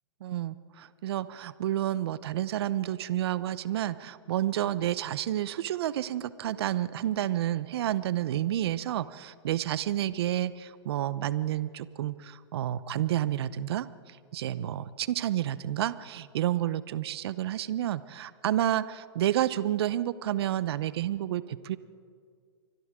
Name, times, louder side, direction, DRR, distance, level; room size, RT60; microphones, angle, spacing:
voice 1, 0.2-21.8, right 12 dB, 60° right, 16 dB, 0.8 m, -30 dB
29.5 x 24.5 x 3.7 m, 2.2 s
hypercardioid pair, 125°, 15 cm